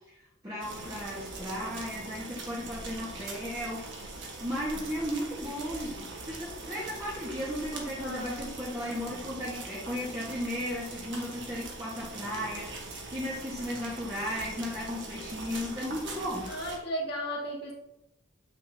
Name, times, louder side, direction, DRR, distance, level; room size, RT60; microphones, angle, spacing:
voice 1, 0.4-4.1 4.4-16.5, equal, 15° right, -7 dB, 1.5 m, -35 dB
sound 1, 0.6-16.8, right 2 dB, 55° right, 1.4 m, -42 dB
voice 2, 8.0-8.5 16.5-17.7, equal, 50° left, -4 dB, 2.2 m, -35 dB
8.4 x 6.5 x 2.9 m, 0.89 s
head